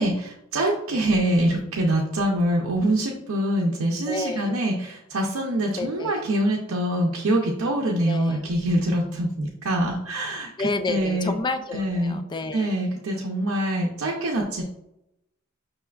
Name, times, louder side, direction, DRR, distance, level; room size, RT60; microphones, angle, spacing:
voice 1, 0.0-10.5 10.9-11.3 11.7-12.2 12.5-14.6, right 1 dB, 90° right, -2 dB, 0.6 m, -24 dB
voice 2, 4.1-4.6 5.8-6.2 8.1-8.4 10.6-12.7, left 3 dB, 20° left, 8 dB, 0.3 m, -30 dB
5.5 x 3.3 x 2.3 m, 0.83 s
head